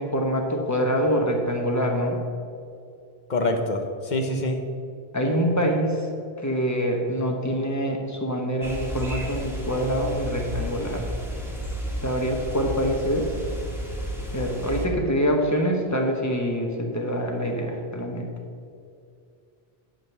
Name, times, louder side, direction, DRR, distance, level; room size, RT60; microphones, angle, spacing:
voice 1, 0.0-2.2 5.1-6.1 6.4-11.1 12.0-13.3 14.3-18.3, equal, 15° left, 1 dB, 1.1 m, -25 dB
voice 2, 3.3-4.6, left 2 dB, 50° left, 5 dB, 1.0 m, -25 dB
sound 1, 8.6-14.9, equal, ahead, 1.4 m, -32 dB
9.4 x 5.3 x 6.7 m, 2.4 s
omnidirectional pair, 1.1 m